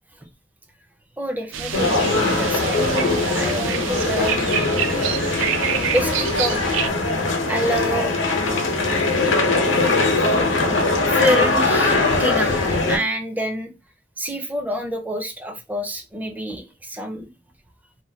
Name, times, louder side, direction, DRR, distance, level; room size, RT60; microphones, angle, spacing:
voice 1, 1.2-4.5 5.9-6.6 7.5-8.2 10.2-10.4 11.1-13.7 14.2-17.3, equal, 10° right, 0.4 m, -27 dB
sound 1, 1.5-6.9, right 8 dB, 80° right, 0.4 m, -27 dB
sound 2, 1.7-13.0, left 3 dB, 75° left, 0.7 m, -21 dB
3.1 x 2.1 x 2.8 m
head